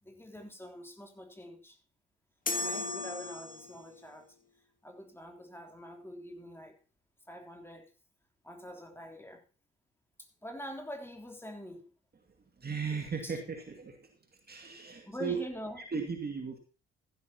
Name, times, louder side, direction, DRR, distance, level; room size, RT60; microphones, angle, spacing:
voice 1, 0.0-1.8 2.6-4.3 4.8-6.8 7.3-7.9 8.4-9.4 10.2-11.9 13.2-13.4 15.0-15.8, equal, 5° left, 3 dB, 3.2 m, -45 dB
sound 1, 2.5-4.0, left 3 dB, 25° left, 2.0 m, -36 dB
voice 2, 12.6-14.1 14.5-15.4 15.9-16.6, right 5 dB, 30° right, 2 dB, 2.3 m, -36 dB
15.0 x 12.0 x 2.9 m, 0.34 s
figure-of-eight pair, 45°, 34 cm